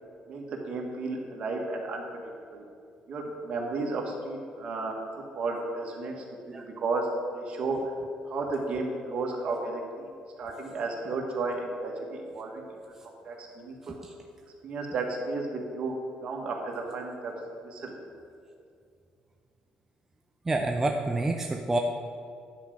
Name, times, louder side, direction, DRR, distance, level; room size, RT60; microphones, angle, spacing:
voice 1, 0.3-2.0 2.5-2.6 3.1-7.9 8.3-10.1 10.4-12.7 13.2-14.0 14.6-15.9 16.2-17.3 17.6-18.0, right 3 dB, 50° right, 0 dB, 2.0 m, -33 dB
voice 2, 20.4-21.8, right 2 dB, 15° right, 2 dB, 0.6 m, -28 dB
10.5 x 5.1 x 7.8 m, 2.4 s
cardioid pair, 115°, 2 cm